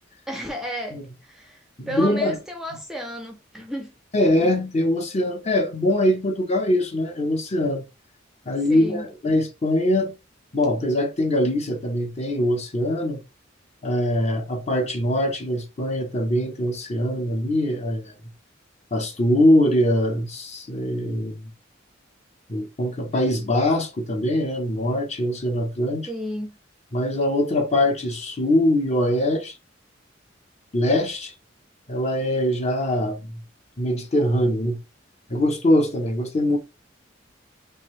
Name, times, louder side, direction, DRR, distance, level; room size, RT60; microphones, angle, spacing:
voice 1, 0.3-1.6 1.9-4.0 4.2-4.4 8.7-9.1 26.1-26.6, equal, ahead, 0.5 m, -33 dB
voice 2, 1.8-2.4 4.1-7.8 8.5-10.2 10.5-13.2 13.8-18.0 18.9-21.3 22.5-26.1 26.9-29.5 30.7-31.3 31.9-33.4 33.8-34.8 35.3-36.6, left 1 dB, 35° left, 0.9 m, -22 dB
3.6 x 2.7 x 3.1 m
head